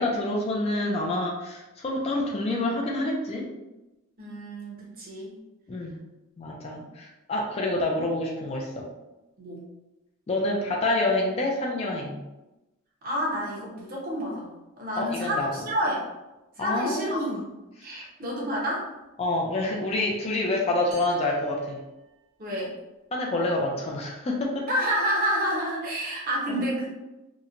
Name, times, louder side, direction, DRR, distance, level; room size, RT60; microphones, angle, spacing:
voice 1, 0.0-3.5 5.7-6.0 6.4-8.9 10.3-12.2 15.0-15.5 16.6-17.4 17.8-18.1 19.2-21.8 23.1-24.7 26.5-26.6, left 2 dB, 30° left, -1 dB, 0.3 m, -27 dB
voice 2, 4.2-5.4 6.6-6.9 9.4-9.6 13.0-16.1 16.6-17.4 17.8-18.9 22.4-22.7 24.7-26.9, equal, 40° right, -3 dB, 0.7 m, -29 dB
sound 1, 20.9-22.6, right 3 dB, 80° right, 1.0 m, -49 dB
2.8 x 2.1 x 2.4 m, 1.0 s
head